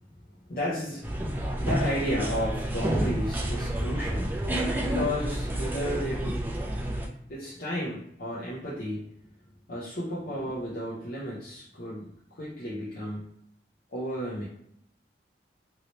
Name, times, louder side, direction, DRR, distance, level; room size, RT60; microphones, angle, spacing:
voice 1, 0.2-4.4 4.7-6.5 7.3-9.3 9.7-13.3 13.9-14.4, equal, 50° left, -7 dB, 0.7 m, -33 dB
sound 1, 1.0-7.1, right 1 dB, 10° right, 0.3 m, -29 dB
2.9 x 2.9 x 2.9 m, 0.71 s
head